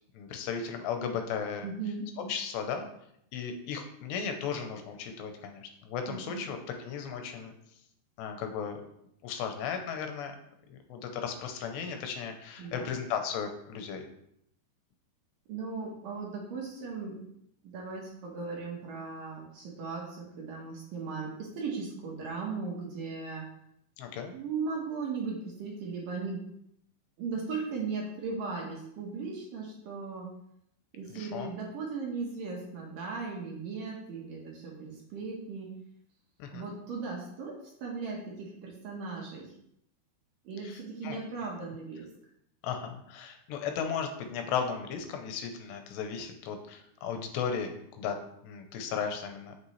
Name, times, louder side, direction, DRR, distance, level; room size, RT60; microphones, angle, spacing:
voice 1, 0.1-1.7 2.2-2.9 3.3-7.5 8.2-8.8 9.2-10.3 10.7-14.1 24.0-24.3 31.1-31.5 36.4-36.7 40.6-41.2 42.6-48.2 48.4-49.6, left 7 dB, 80° left, 5 dB, 3.0 m, -35 dB
voice 2, 1.6-2.1 6.1-6.4 12.6-12.9 15.5-17.2 17.6-23.5 24.3-26.5 27.2-30.3 30.9-35.8 36.5-39.5 40.4-42.1, right 4 dB, 65° right, -2 dB, 2.6 m, -37 dB
8.2 x 6.7 x 3.2 m, 0.72 s
omnidirectional pair, 4.9 m